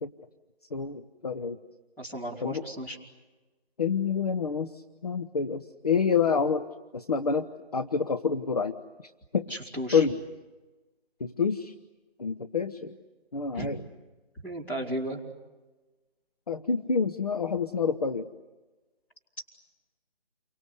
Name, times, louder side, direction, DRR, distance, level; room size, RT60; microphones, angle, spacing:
voice 1, 0.7-1.6 2.4-2.6 3.8-8.7 9.3-9.5 9.9-10.2 11.2-11.7 12.2-13.0 13.3-13.8 16.5-18.3, left 5 dB, 40° left, 8 dB, 0.8 m, -28 dB
voice 2, 2.0-3.0 9.5-10.0 13.5-13.7 14.4-15.2, right 1 dB, 5° left, -7 dB, 3.1 m, -34 dB
29.5 x 24.5 x 8.2 m, 1.2 s
figure-of-eight pair, 165°, 31 cm